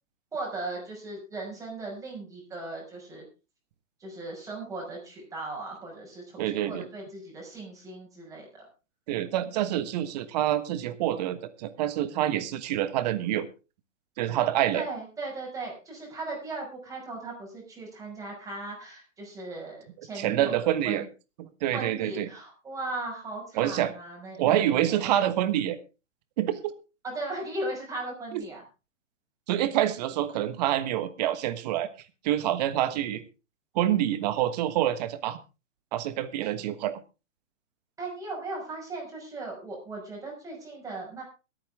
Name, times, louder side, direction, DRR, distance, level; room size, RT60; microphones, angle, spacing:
voice 1, 0.3-3.2 4.0-8.6 14.7-21.1 21.7-25.2 27.0-28.6 38.0-41.2, right 2 dB, 10° right, -1 dB, 5.7 m, -37 dB
voice 2, 6.4-6.9 9.1-13.5 14.2-14.8 20.1-21.0 21.4-22.3 23.5-23.9 24.4-25.8 26.4-26.7 28.3-28.4 29.5-31.9 32.2-33.2 33.7-35.4 35.9-37.0, right 12 dB, 30° right, 12 dB, 1.4 m, -27 dB
22.5 x 8.8 x 3.6 m, 0.31 s
hypercardioid pair, 150°, 39 cm